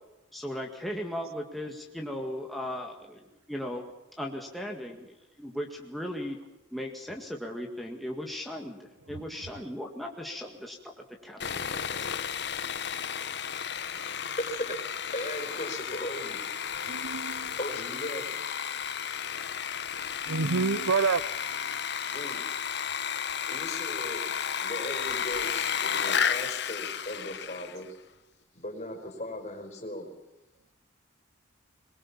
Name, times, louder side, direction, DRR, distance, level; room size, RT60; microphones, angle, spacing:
voice 1, 0.3-3.8 4.2-6.4 6.7-10.9 11.2-12.1, equal, ahead, 0 dB, 1.9 m, -37 dB
Sawing, 11.4-27.8, left 7 dB, 55° left, 1.0 m, -33 dB
voice 2, 14.4-16.4 17.6-18.2 22.0-22.4 23.5-24.2 24.6-27.9 28.5-30.1, left 1 dB, 35° left, 2 dB, 4.9 m, -37 dB
voice 3, 16.9-17.5 20.3-21.2, right 4 dB, 85° right, 18 dB, 0.7 m, -27 dB
22.5 x 21.5 x 7.3 m, 1.0 s
head